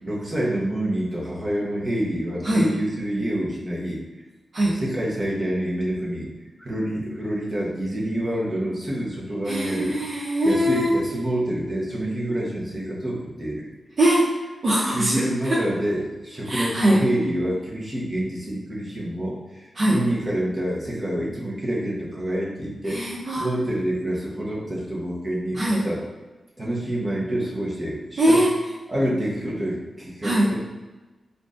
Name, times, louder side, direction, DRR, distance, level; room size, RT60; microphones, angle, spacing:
voice 1, 0.0-4.0 4.7-6.3 6.6-10.0 10.4-13.7 14.8-23.0 23.4-26.0 26.6-28.4 28.9-30.6, right 1 dB, 30° right, -5 dB, 1.0 m, -27 dB
voice 2, 9.5-10.9 14.0-14.3 14.6-15.6 16.5-17.0 19.8-20.0 22.9-23.5 25.5-25.8 28.2-28.5 30.2-30.5, right 1 dB, 50° right, -6 dB, 0.6 m, -21 dB
4.5 x 2.6 x 2.5 m, 1.2 s
wide cardioid pair, 105°, 0 cm